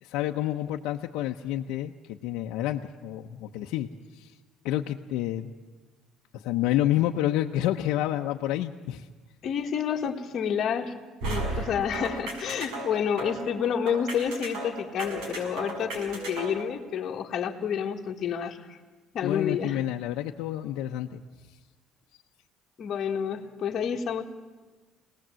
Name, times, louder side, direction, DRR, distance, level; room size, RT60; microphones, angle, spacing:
voice 1, 0.0-3.9 4.2-4.3 4.6-5.5 6.3-9.1 19.2-21.2, left 13 dB, 80° left, 2 dB, 0.8 m, -29 dB
voice 2, 9.4-10.9 11.2-18.8 19.1-19.8 22.8-24.2, left 7 dB, 40° left, 3 dB, 1.7 m, -29 dB
sound 1, 11.2-16.7, right 2 dB, 85° right, 6.3 m, -35 dB
26.0 x 19.0 x 7.6 m, 1.3 s
cardioid pair, 170°, 0 cm